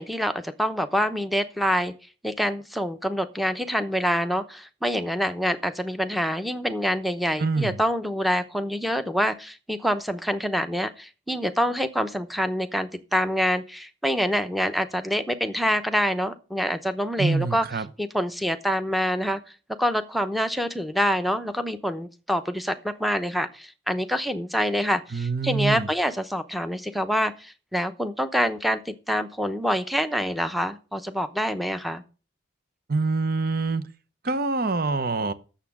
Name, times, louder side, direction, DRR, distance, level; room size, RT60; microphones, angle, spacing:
voice 1, 0.0-1.9 2.2-17.7 18.0-19.4 19.8-32.0, equal, ahead, 0.8 m, -26 dB
voice 2, 7.4-7.8 17.2-17.9 25.1-25.9 32.9-33.8 34.2-35.3, right 3 dB, 45° right, 0.8 m, -25 dB
9.2 x 7.2 x 6.0 m
head